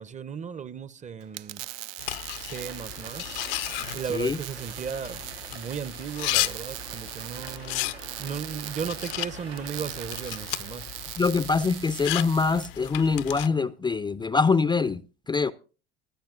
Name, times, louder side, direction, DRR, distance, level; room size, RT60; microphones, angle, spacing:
voice 1, 0.0-1.7 2.3-3.4 3.9-5.2 5.5-10.9, right 7 dB, 25° right, 0.7 m, -36 dB
sound 1, 1.2-12.7, right 16 dB, 65° right, 0.5 m, -40 dB
sound 2, 2.0-13.5, left 18 dB, 70° left, 0.7 m, -35 dB
sound 3, 2.5-11.7, right 9 dB, 80° right, 1.2 m, -47 dB
voice 2, 11.2-15.5, left 4 dB, 15° left, 0.5 m, -24 dB
25.5 x 8.7 x 2.4 m
hypercardioid pair, 80°, 30 cm